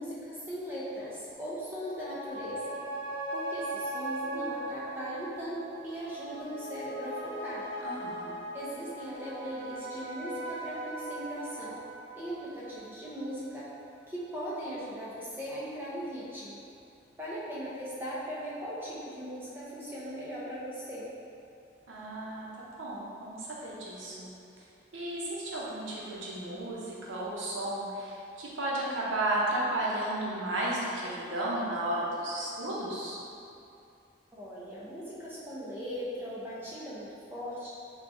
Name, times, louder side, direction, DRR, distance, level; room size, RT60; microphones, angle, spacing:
voice 1, 0.0-2.8 3.3-7.6 8.5-11.8 12.2-13.7 14.1-16.6 17.2-21.1 34.3-37.7, equal, 10° right, -8 dB, 0.5 m, -39 dB
sound 1, 1.7-14.5 14.9-15.0, right 1 dB, 40° left, 0.6 m, -39 dB
voice 2, 7.8-8.3 21.9-24.3 24.9-33.2, right 1 dB, 90° right, -5 dB, 0.7 m, -33 dB
4.6 x 2.3 x 2.6 m, 2.6 s
head